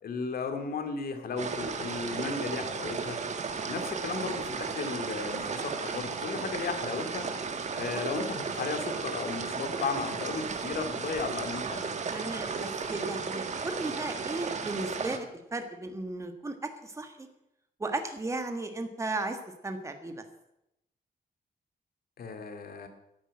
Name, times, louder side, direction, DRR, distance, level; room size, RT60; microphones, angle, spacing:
voice 1, 0.0-3.2 3.7-7.3 7.8-11.9 22.2-22.9, left 4 dB, 70° left, 7 dB, 2.4 m, -35 dB
sound 1, 1.4-15.2, right 5 dB, 45° right, 1.5 m, -34 dB
voice 2, 12.1-17.3 17.8-20.2, right 2 dB, 20° right, 6 dB, 1.5 m, -35 dB
13.0 x 10.5 x 8.7 m, 0.84 s
wide cardioid pair, 165°, 16 cm